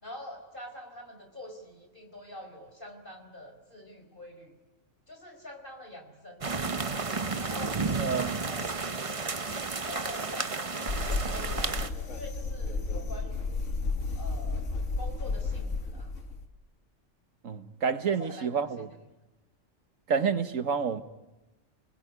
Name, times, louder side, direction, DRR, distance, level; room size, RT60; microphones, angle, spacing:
voice 1, 0.0-4.5 5.1-7.0 7.4-9.2 9.8-13.7 14.2-14.7 15.0-16.1 18.1-18.9, left 1 dB, 40° left, 5.0 m, -45 dB
sound 1, 6.4-11.9, right 4 dB, 30° right, 1.0 m, -32 dB
voice 2, 8.0-8.3 17.4-18.9 20.1-21.0, right 6 dB, 90° right, 1.7 m, -29 dB
sound 2, 10.9-16.5, left 3 dB, 70° left, 2.1 m, -32 dB
30.0 x 20.5 x 9.5 m
omnidirectional pair, 1.3 m